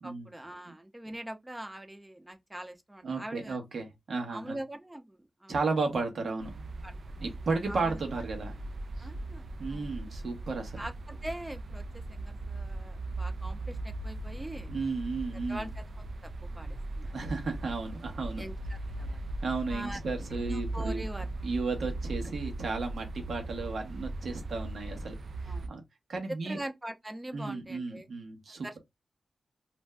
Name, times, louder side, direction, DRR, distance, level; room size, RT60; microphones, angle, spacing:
voice 1, 0.0-3.6 4.3-5.5 6.8-7.0 7.7-8.0 9.0-10.0 10.8-14.7 15.5-15.8 16.2-17.1 18.4-19.2 19.7-20.0 20.3-21.3 25.5-25.7 26.3-28.1 28.6-28.8, right 1 dB, 15° right, 0.5 m, -42 dB
voice 2, 3.0-4.6 5.5-6.5 7.2-8.5 9.0-9.1 9.6-10.8 14.7-15.7 17.1-18.4 19.4-21.0 21.4-25.1 25.4-25.8 26.1-26.6 27.3-28.8, right 4 dB, 85° right, 1.0 m, -34 dB
sound 1, 6.4-25.7, right 2 dB, 65° right, 0.4 m, -38 dB
2.5 x 2.1 x 3.4 m
wide cardioid pair, 120°, 0 cm